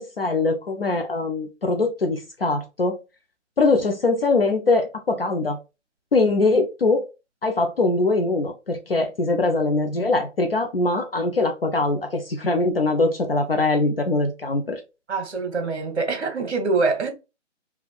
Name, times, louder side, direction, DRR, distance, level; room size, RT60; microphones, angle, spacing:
voice 1, 0.0-3.0 3.6-5.6 6.1-7.0 7.4-14.8, left 3 dB, 50° left, 0.5 m, -22 dB
voice 2, 15.1-17.1, right 4 dB, 60° right, 1.0 m, -24 dB
3.4 x 2.3 x 2.3 m
hypercardioid pair, 175°, 37 cm